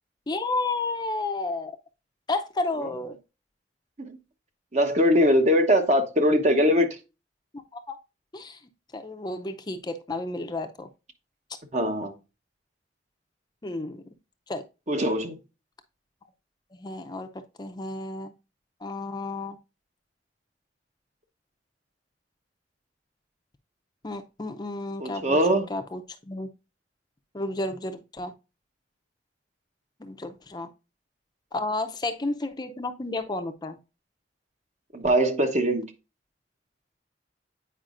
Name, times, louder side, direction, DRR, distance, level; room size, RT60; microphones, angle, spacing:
voice 1, 0.3-1.7 2.3-3.2 7.7-8.0 8.3-8.6 8.9-10.9 13.6-14.0 14.5-14.6 16.7-17.3 17.6-18.3 18.8-19.6 24.0-26.5 27.3-28.3 30.0-30.7 31.5-33.8, left 2 dB, 25° left, 0.5 m, -32 dB
voice 2, 4.7-6.9 11.7-12.1 14.9-15.4 25.0-25.7 34.9-35.9, equal, 40° right, 1.0 m, -21 dB
8.8 x 5.0 x 2.5 m
head